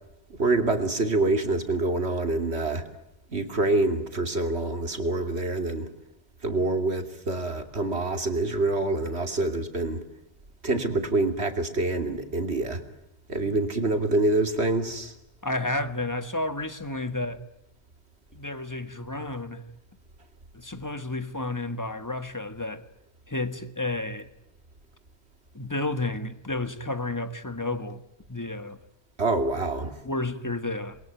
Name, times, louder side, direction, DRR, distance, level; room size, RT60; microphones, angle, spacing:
voice 1, 0.3-2.8 3.3-5.9 6.4-10.0 10.6-12.8 13.3-15.1 29.2-29.9, right 2 dB, 80° right, 3.0 m, -26 dB
voice 2, 15.4-17.4 18.3-19.6 20.5-22.8 23.3-24.3 25.5-28.0 28.3-28.8 30.0-31.0, left 2 dB, 15° left, 1.7 m, -31 dB
28.5 x 22.5 x 9.2 m
omnidirectional pair, 1.1 m